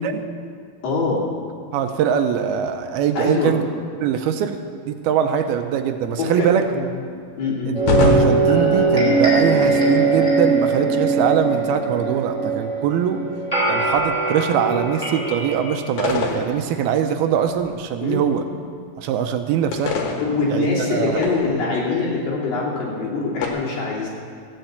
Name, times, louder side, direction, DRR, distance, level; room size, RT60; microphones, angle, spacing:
voice 1, 0.8-1.2 3.2-3.5 6.2-6.8 7.4-7.7 18.0-18.2 20.1-24.1, left 3 dB, 60° left, -5 dB, 4.6 m, -23 dB
voice 2, 1.7-3.7 4.0-6.6 7.7-13.2 13.7-18.4 19.0-19.9 20.5-21.2, right 8 dB, 85° right, 7 dB, 2.6 m, -22 dB
sound 1, 7.7-15.9, right 3 dB, 10° left, 4.3 m, -20 dB
sound 2, 7.9-9.5 13.9-14.2 16.0-17.2 17.5-17.7 19.7-21.7 23.4-23.5, left 4 dB, 85° left, 3.5 m, -25 dB
15.0 x 8.8 x 8.1 m, 2.2 s
omnidirectional pair, 4.6 m